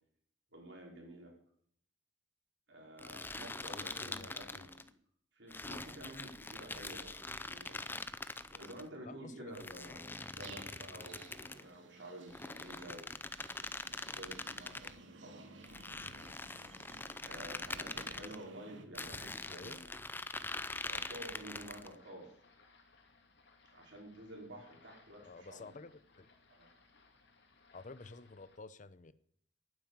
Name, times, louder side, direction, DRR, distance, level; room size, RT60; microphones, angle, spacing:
voice 1, 0.5-1.3 2.7-4.9 5.3-7.8 8.5-10.1 10.4-13.1 14.1-14.9 15.2-15.5 16.2-16.4 17.2-19.9 20.8-22.3 23.6-25.7 26.5-26.7, right 1 dB, 70° right, 0 dB, 5.1 m, -50 dB
sound 1, 3.0-4.9 5.5-8.8 9.5-11.7 12.3-14.9 15.6-18.4 18.9-21.9, left 2 dB, 10° left, 0.6 m, -44 dB
voice 2, 3.6-4.7 9.0-10.0 19.5-19.8 25.2-26.3 27.7-29.1, left 3 dB, 45° left, 15 dB, 0.7 m, -52 dB
sound 2, 10.4-18.8, right 3 dB, 85° right, 2.2 m, -57 dB
sound 3, 21.7-28.6, left 4 dB, 65° left, 2.7 m, -65 dB
12.0 x 9.4 x 8.9 m, 0.63 s
head